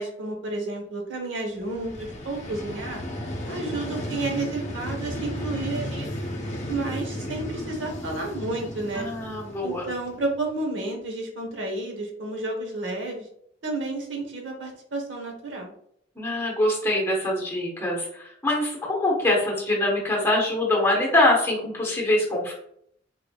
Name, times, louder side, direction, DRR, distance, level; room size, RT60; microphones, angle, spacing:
voice 1, 0.0-3.0 3.5-6.1 6.7-9.1 9.6-13.3 13.6-15.7, right 2 dB, 75° right, 2 dB, 0.9 m, -31 dB
Vehicle, 1.5-10.5, equal, 40° left, 0.6 m, -34 dB
voice 2, 8.9-9.9 16.2-22.5, left 1 dB, 15° left, -2 dB, 1.0 m, -24 dB
3.7 x 3.3 x 2.3 m, 0.68 s
head